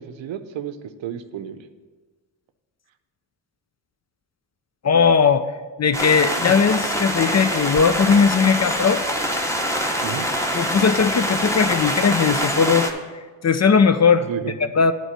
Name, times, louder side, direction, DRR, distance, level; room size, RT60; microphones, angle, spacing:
voice 1, 0.0-1.6 10.0-10.3 14.2-14.5, right 9 dB, 65° right, 10 dB, 0.7 m, -32 dB
voice 2, 4.8-5.4 5.8-9.0 10.5-12.9 13.4-14.3 14.8-14.9, left 6 dB, 35° left, 11 dB, 0.5 m, -18 dB
sound 1, 5.9-12.9, equal, 5° left, 1.1 m, -24 dB
8.7 x 4.5 x 6.7 m, 1.4 s
supercardioid pair, 45°, 49 cm